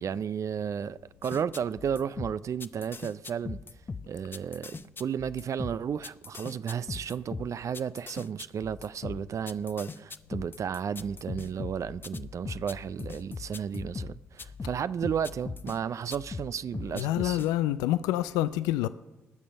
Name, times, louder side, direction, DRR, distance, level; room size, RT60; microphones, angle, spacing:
voice 1, 0.0-3.6 4.1-17.4, right 7 dB, 55° right, 0.4 m, -33 dB
sound 1, 1.2-15.8 16.1-17.5, left 4 dB, 35° left, 0.7 m, -40 dB
voice 2, 16.9-18.9, left 14 dB, 80° left, 0.4 m, -27 dB
20.0 x 6.9 x 6.2 m
hypercardioid pair, 40°, 6 cm